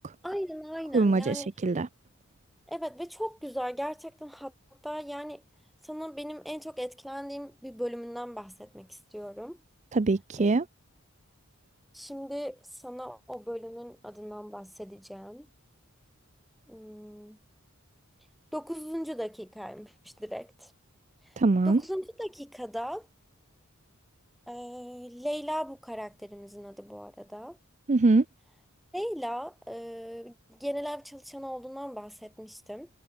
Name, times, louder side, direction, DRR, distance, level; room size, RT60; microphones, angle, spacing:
voice 1, 0.2-1.5 2.7-4.5 4.8-5.4 5.8-9.6 10.4-10.5 11.9-15.5 16.7-17.4 18.5-20.7 21.7-23.1 24.5-27.6 28.9-32.9, equal, ahead, 4.1 m, -38 dB
voice 2, 0.9-1.9 9.9-10.6 21.4-21.8 27.9-28.2, right 3 dB, 35° right, 0.5 m, -23 dB
head